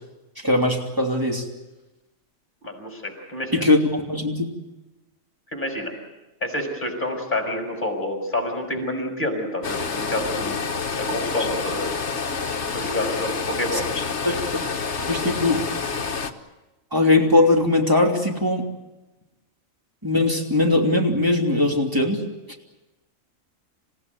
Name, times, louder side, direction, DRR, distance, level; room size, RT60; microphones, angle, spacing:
voice 1, 0.4-1.4 3.5-4.5 13.7-13.8 14.2-14.4 15.1-15.6 16.9-18.6 20.0-22.2, left 2 dB, 15° right, 1 dB, 3.1 m, -20 dB
voice 2, 2.6-3.6 5.5-5.9 6.4-10.6 11.0-11.9 12.7-13.9, left 1 dB, 35° left, 3 dB, 6.3 m, -28 dB
sound 1, 9.6-16.3, left 5 dB, 55° left, 1.6 m, -28 dB
28.0 x 16.0 x 9.6 m, 1.1 s
omnidirectional pair, 1.4 m